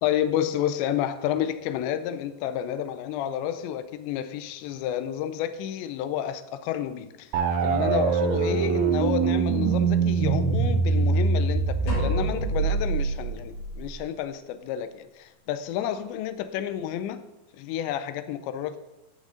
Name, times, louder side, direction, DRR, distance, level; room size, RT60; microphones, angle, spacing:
voice 1, 0.0-7.3 7.6-17.2 17.5-18.8, left 10 dB, 85° left, 2.9 m, -30 dB
sound 1, 7.3-14.0, right 5 dB, 75° right, 2.4 m, -24 dB
sound 2, 11.9-13.7, left 1 dB, 45° left, 4.4 m, -35 dB
13.5 x 8.3 x 3.8 m
omnidirectional pair, 5.1 m